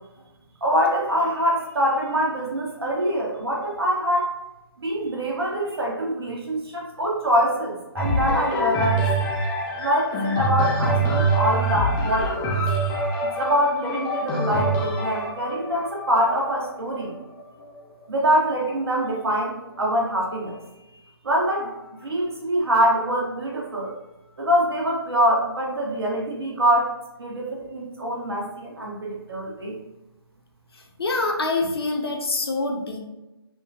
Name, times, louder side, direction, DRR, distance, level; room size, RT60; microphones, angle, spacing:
voice 1, 0.6-4.3 4.8-9.1 9.8-12.5 13.4-17.1 18.1-20.6 21.2-21.7 22.0-23.9 24.4-26.9 27.2-29.8, equal, 70° right, -2 dB, 1.1 m, -24 dB
sound 1, 8.0-17.7 18.4-18.5, right 2 dB, 10° left, 0.3 m, -25 dB
voice 2, 31.0-33.0, left 3 dB, 70° left, 2 dB, 0.7 m, -25 dB
3.6 x 2.2 x 2.7 m, 0.98 s
figure-of-eight pair, 145°, 13 cm